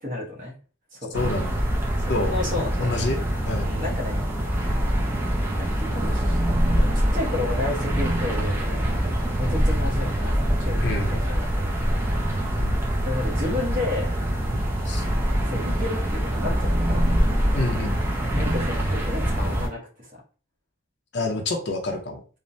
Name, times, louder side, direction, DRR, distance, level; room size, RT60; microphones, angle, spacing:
voice 1, 0.0-0.6 0.9-1.4 2.0-3.0 3.6-4.2 5.6-6.4 6.7-9.1 9.4-10.8 11.1-11.9 13.0-14.1 15.4-17.3 18.3-20.2, left 2 dB, 40° right, -2 dB, 1.0 m, -32 dB
voice 2, 1.1-1.6 2.1-2.3 2.8-3.2 3.5-3.7 10.8-11.2 12.6-12.8 14.9-15.0 17.5-18.0 21.1-22.2, left 2 dB, 55° left, 4 dB, 0.6 m, -27 dB
sound 1, 1.1-19.7, equal, 10° right, 0.5 m, -24 dB
3.1 x 2.0 x 2.6 m, 0.37 s
head